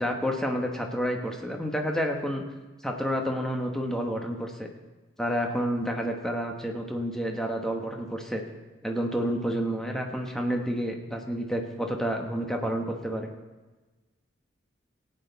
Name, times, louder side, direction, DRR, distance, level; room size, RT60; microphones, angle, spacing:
voice 1, 0.0-2.4 2.8-4.7 5.2-8.4 8.8-13.3, equal, 5° left, 2 dB, 1.1 m, -29 dB
17.0 x 9.1 x 4.0 m, 1.2 s
head